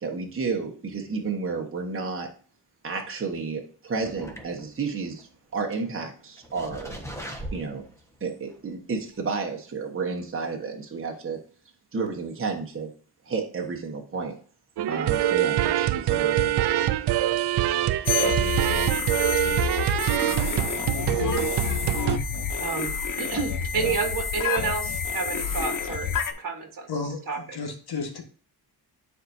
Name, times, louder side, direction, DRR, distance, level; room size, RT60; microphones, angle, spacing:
voice 1, 0.0-2.3 2.8-5.3 5.5-7.0 7.5-7.8 8.2-11.4 11.9-12.9 13.2-14.3 14.9-16.6, right 4 dB, 30° right, 1 dB, 1.3 m, -31 dB
sound 1, 4.0-4.9 5.2-5.3 5.7-5.8 6.4-8.1 8.5-8.6 9.1-9.2, right 1 dB, 5° left, 1.3 m, -39 dB
sound 2, 14.8-22.2, right 13 dB, 75° right, 0.5 m, -24 dB
sound 3, 18.1-26.3, left 6 dB, 55° left, 0.8 m, -28 dB
voice 2, 20.9-26.9 27.3-27.6, right 5 dB, 55° right, 4 dB, 1.4 m, -31 dB
voice 3, 26.9-28.2, left 4 dB, 70° left, 5 dB, 1.6 m, -33 dB
10.0 x 4.7 x 2.7 m, 0.43 s
wide cardioid pair, 120°, 40 cm